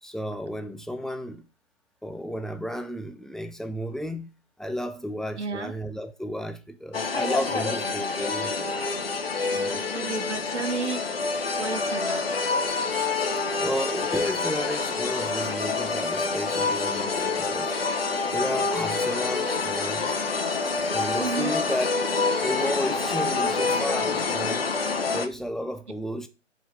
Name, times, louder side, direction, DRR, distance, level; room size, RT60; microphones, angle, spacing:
voice 1, 0.0-1.5 2.0-4.3 4.6-9.0 9.5-10.4 13.6-17.8 18.3-20.1 20.8-22.0 22.4-24.7 25.1-26.3, equal, ahead, 0.3 m, -33 dB
voice 2, 5.4-5.7 9.9-11.0 11.6-12.3 21.2-21.6, right 4 dB, 65° right, 1.0 m, -31 dB
sound 1, 6.9-25.3, left 4 dB, 50° left, 0.9 m, -27 dB
5.5 x 4.4 x 6.1 m
hypercardioid pair, 180°, 37 cm